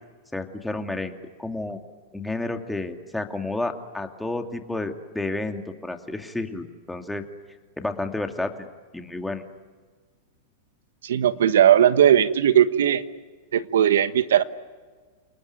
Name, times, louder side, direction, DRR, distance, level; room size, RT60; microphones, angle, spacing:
voice 1, 0.3-1.1 1.4-1.8 2.1-7.3 7.8-8.7 8.9-9.4, left 2 dB, 5° left, 5 dB, 2.5 m, -31 dB
voice 2, 11.0-13.0 13.5-14.4, right 10 dB, 75° right, 12 dB, 1.3 m, -18 dB
29.5 x 19.5 x 9.6 m, 1.5 s
hypercardioid pair, 115°, 0 cm